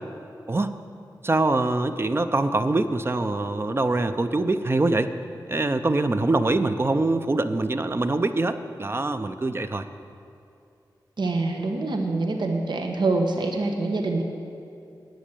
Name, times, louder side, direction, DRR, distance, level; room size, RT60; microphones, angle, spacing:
voice 1, 1.2-5.1 5.5-9.8, right 2 dB, 30° right, 9 dB, 0.5 m, -24 dB
voice 2, 11.2-14.2, right 2 dB, 80° right, 3 dB, 1.1 m, -25 dB
10.5 x 7.5 x 8.5 m, 2.6 s
wide cardioid pair, 105°, 8 cm